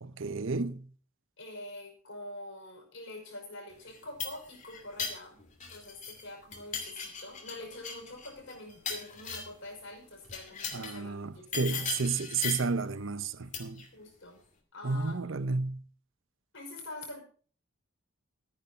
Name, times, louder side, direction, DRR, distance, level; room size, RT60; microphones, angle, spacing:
voice 1, 0.0-0.9 10.7-13.8 14.8-15.8, right 4 dB, 65° right, 0.7 m, -32 dB
voice 2, 1.4-11.9 13.9-14.4 14.7-15.2 16.5-17.2, left 1 dB, 60° left, 5.5 m, -45 dB
sound 1, 3.9-6.2 6.5-9.6 10.2-11.0 11.5-12.8 13.5-13.9, left 6 dB, 35° left, 2.6 m, -38 dB
13.5 x 10.0 x 4.4 m
head